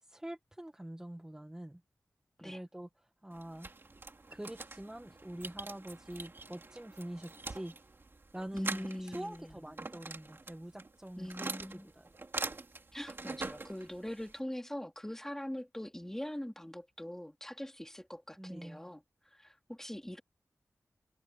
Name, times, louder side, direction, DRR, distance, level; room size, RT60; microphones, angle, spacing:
voice 1, 0.0-1.8 2.4-3.7 4.3-7.7 8.3-12.1 18.4-18.9, right 1 dB, 10° right, 1.5 m, -45 dB
sound 1, 3.3-14.4, right 3 dB, 40° right, 2.6 m, -44 dB
voice 2, 8.5-9.7 11.2-11.9 12.9-19.0 19.3-20.2, left 1 dB, 5° left, 3.3 m, -42 dB
wide cardioid pair, 105°, 6 cm